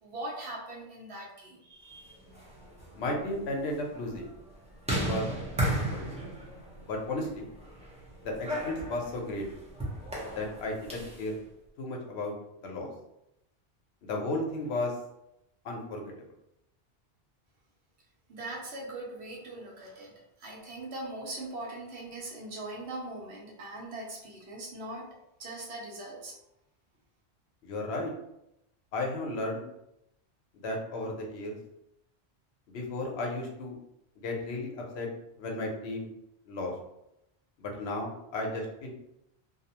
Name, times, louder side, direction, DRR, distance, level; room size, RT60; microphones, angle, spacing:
voice 1, 0.0-2.2 18.3-20.1 20.4-25.1 25.4-26.3, right 2 dB, 75° right, -3 dB, 1.0 m, -41 dB
sound 1, 2.2-11.3, right 1 dB, 10° right, 0.4 m, -36 dB
voice 2, 2.9-4.3 4.9-5.3 5.6-6.2 6.8-7.5 8.2-9.4 10.3-11.4 11.8-12.3 12.6-12.9 14.0-14.9 15.6-16.1 27.6-28.1 28.9-29.6 30.6-31.6 32.7-33.8 34.2-35.1 35.4-36.1 36.5-36.7 37.6-38.9, left 2 dB, 75° left, 0 dB, 0.9 m, -34 dB
2.5 x 2.0 x 2.8 m, 0.83 s
omnidirectional pair, 1.1 m